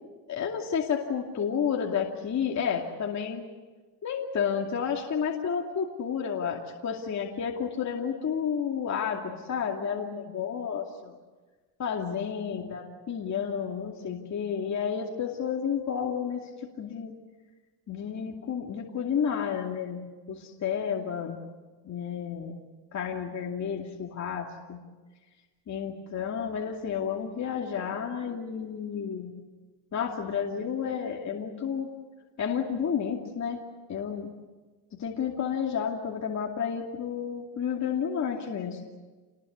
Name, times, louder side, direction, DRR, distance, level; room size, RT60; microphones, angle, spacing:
voice 1, 0.3-3.4 4.0-10.8 11.8-17.1 17.9-20.0 20.3-21.4 21.8-22.5 22.9-24.8 25.7-29.4 29.9-31.9 32.4-33.6 33.9-34.3 35.0-38.8, left 7 dB, 35° left, 0 dB, 2.6 m, -31 dB
29.0 x 21.0 x 8.4 m, 1.3 s
cardioid pair, 120°, 47 cm